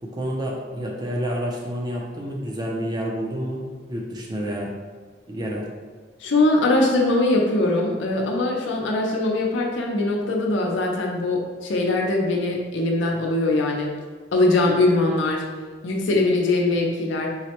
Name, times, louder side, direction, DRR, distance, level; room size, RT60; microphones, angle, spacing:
voice 1, 0.0-4.7 5.3-5.7, equal, 20° right, -2 dB, 0.4 m, -29 dB
voice 2, 6.2-13.9 14.3-15.4 15.8-17.3, left 2 dB, 85° left, 0 dB, 0.5 m, -21 dB
3.9 x 2.1 x 2.9 m, 1.4 s
head